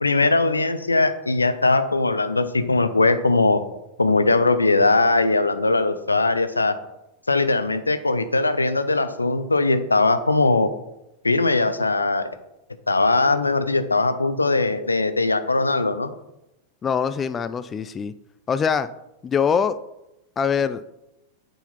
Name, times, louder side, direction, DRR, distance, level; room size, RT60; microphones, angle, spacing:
voice 1, 0.0-3.6 4.0-6.8 7.3-10.7 11.2-12.3 12.9-16.1, left 3 dB, 80° left, 11 dB, 0.6 m, -20 dB
voice 2, 16.8-18.1 18.5-18.9 19.2-19.8 20.4-20.8, left 6 dB, 20° left, 13 dB, 0.3 m, -23 dB
8.1 x 5.8 x 4.0 m, 0.89 s
figure-of-eight pair, 90°, 0 cm